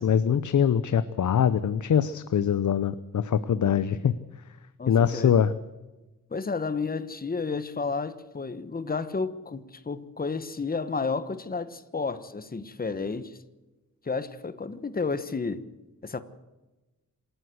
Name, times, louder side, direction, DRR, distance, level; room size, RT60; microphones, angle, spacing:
voice 1, 0.0-4.1 4.9-5.5, left 8 dB, 60° left, 0.8 m, -23 dB
voice 2, 4.8-5.3 6.3-13.4 14.0-15.7 16.0-16.2, left 4 dB, 25° left, 1.2 m, -31 dB
27.0 x 13.0 x 8.0 m
wide cardioid pair, 135°, 34 cm